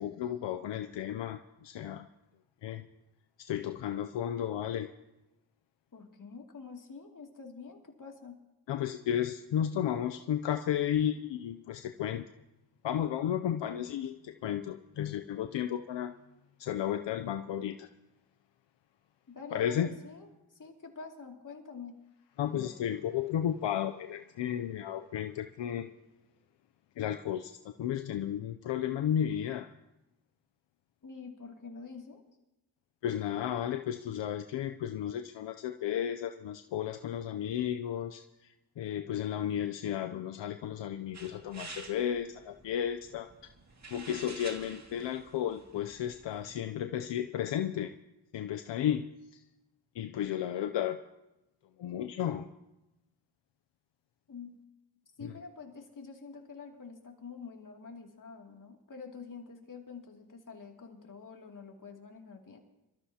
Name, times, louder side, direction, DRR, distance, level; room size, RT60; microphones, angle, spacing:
voice 1, 0.0-2.1 2.6-2.9 3.4-4.9 8.7-12.3 12.8-16.1 16.6-17.9 19.5-19.9 22.4-25.9 27.0-29.7 33.0-43.3 43.9-47.9 48.3-49.1 49.9-51.0 51.8-52.5 55.2-55.3, left 10 dB, 85° left, 7 dB, 0.6 m, -33 dB
voice 2, 5.9-8.4 19.3-20.3 20.6-22.0 31.0-32.2 54.3-54.6 55.2-62.6, left 5 dB, 45° left, 1 dB, 2.6 m, -46 dB
sound 1, 41.1-46.6, right 3 dB, 40° right, 2.2 m, -50 dB
25.0 x 13.5 x 2.9 m, 0.96 s
cardioid pair, 60°, 42 cm